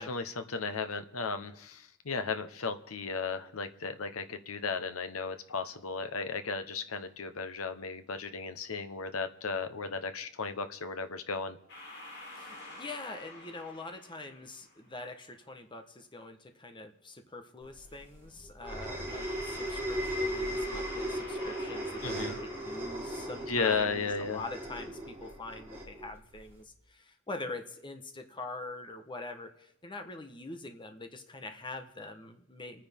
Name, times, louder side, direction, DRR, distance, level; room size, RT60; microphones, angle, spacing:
voice 1, 0.0-11.6 22.0-22.4 23.5-24.4, left 4 dB, 80° left, 8 dB, 1.0 m, -35 dB
sound 1, 11.7-15.0 19.1-23.9, left 2 dB, 60° left, 3.7 m, -48 dB
voice 2, 12.4-32.9, left 2 dB, 25° left, 6 dB, 1.1 m, -44 dB
sound 2, 17.8-26.6, equal, 10° right, 3.9 m, -37 dB
29.0 x 9.7 x 3.6 m, 0.81 s
head